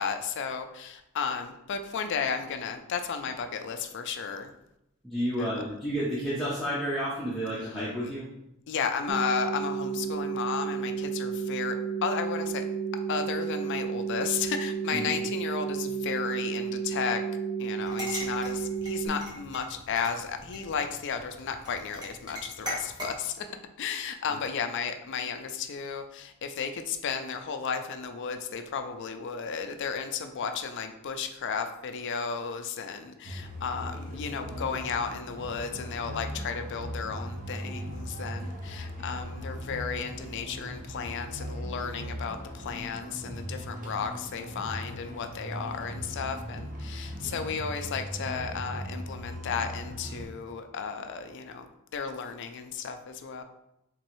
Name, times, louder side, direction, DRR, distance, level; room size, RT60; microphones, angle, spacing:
voice 1, 0.0-4.5 5.4-5.6 8.7-11.8 12.0-12.7 13.1-17.2 17.6-23.5 23.8-51.7 51.9-53.4, left 6 dB, 55° left, 7 dB, 0.4 m, -33 dB
voice 2, 5.0-8.3 14.9-15.1, equal, ahead, -9 dB, 0.7 m, -31 dB
sound 1, 9.1-19.1, right 6 dB, 75° right, 0.5 m, -32 dB
sound 2, 17.8-23.1, left 1 dB, 20° right, 1.3 m, -41 dB
sound 3, 33.2-50.3, equal, 40° right, 0.7 m, -39 dB
3.7 x 3.1 x 3.0 m, 0.84 s
head